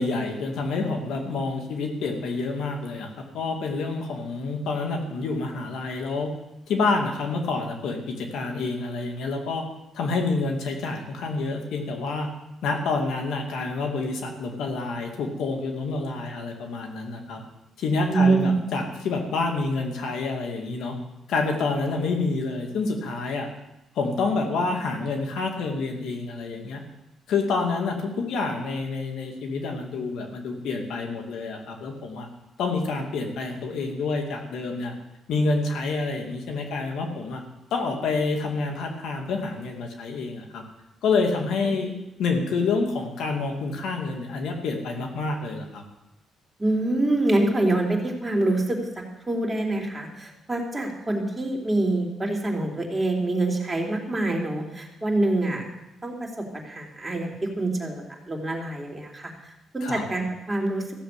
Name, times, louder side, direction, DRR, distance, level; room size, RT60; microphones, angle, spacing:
voice 1, 0.0-6.3 6.7-9.6 9.9-12.3 12.6-17.4 17.8-20.9 21.3-23.5 23.9-26.8 27.3-32.3 32.6-34.9 35.3-37.4 37.7-40.6 41.0-41.9 42.2-45.8 59.8-60.1, left 3 dB, 75° left, 2 dB, 2.5 m, -28 dB
voice 2, 18.1-18.6 41.6-41.8 46.6-55.6 56.0-59.3 59.7-60.9, right 2 dB, 20° right, 0 dB, 3.2 m, -25 dB
15.0 x 7.5 x 8.3 m, 0.94 s
cardioid pair, 90°, 0 cm